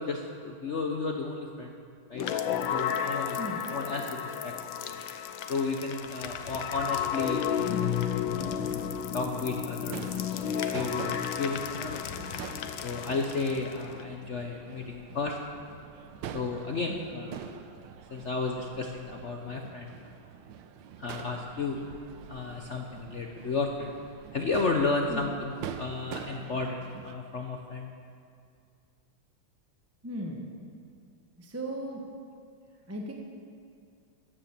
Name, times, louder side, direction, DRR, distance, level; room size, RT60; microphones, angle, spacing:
voice 1, 0.0-1.7 2.1-3.4 3.7-4.5 4.8-5.0 5.5-12.0 12.8-15.4 16.3-17.8 18.1-19.9 21.0-21.8 22.3-23.9 24.3-27.9, left 3 dB, 55° left, 2 dB, 0.8 m, -33 dB
sound 1, 2.1-14.0, left 9 dB, 80° left, 1.5 m, -33 dB
Crowd / Fireworks, 9.9-27.1, right 8 dB, 75° right, 1.4 m, -45 dB
voice 2, 30.0-30.5 31.4-32.0 32.9-33.1, equal, 10° right, 0 dB, 0.7 m, -36 dB
13.5 x 10.0 x 7.3 m, 2.4 s
omnidirectional pair, 2.2 m